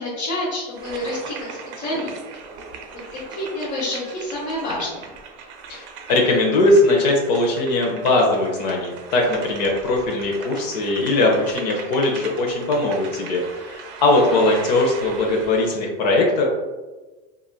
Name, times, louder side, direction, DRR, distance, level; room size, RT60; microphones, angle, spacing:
voice 1, 0.0-2.1 3.1-5.1 14.1-14.4, left 1 dB, 50° left, -8 dB, 1.0 m, -28 dB
sound 1, 0.7-15.8, right 5 dB, 60° right, 0.5 m, -39 dB
voice 2, 5.7-16.4, left 2 dB, 85° left, 0 dB, 0.6 m, -20 dB
3.0 x 2.4 x 2.2 m, 1.2 s
supercardioid pair, 110°, 21 cm